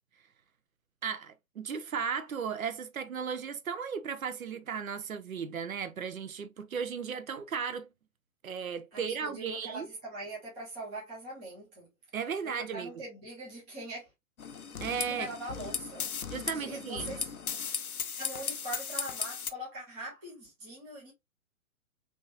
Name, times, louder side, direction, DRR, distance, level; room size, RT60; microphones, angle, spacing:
voice 1, 1.0-7.9 8.4-9.9 12.1-12.9 14.8-15.3 16.3-17.1, right 6 dB, 70° right, 0.7 m, -35 dB
voice 2, 8.9-11.9 12.5-14.1 15.1-16.1 16.5-17.3 18.2-21.1, right 1 dB, 5° right, 0.4 m, -42 dB
sound 1, 14.4-19.5, left 7 dB, 85° left, 0.6 m, -37 dB
3.5 x 2.8 x 2.5 m
figure-of-eight pair, 120°, 42 cm